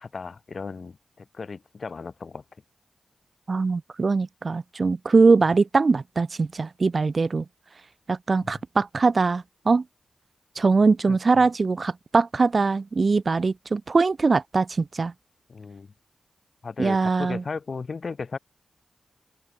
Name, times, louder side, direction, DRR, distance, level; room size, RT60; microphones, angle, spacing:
voice 1, 0.0-2.4 8.4-8.5 11.1-11.2 15.5-15.9 16.6-18.4, left 4 dB, 60° left, 7.9 m, -35 dB
voice 2, 3.5-7.4 8.1-9.8 10.5-15.1 16.8-17.4, right 4 dB, 50° right, 4.9 m, -22 dB
open air
cardioid pair, 50°, 0 cm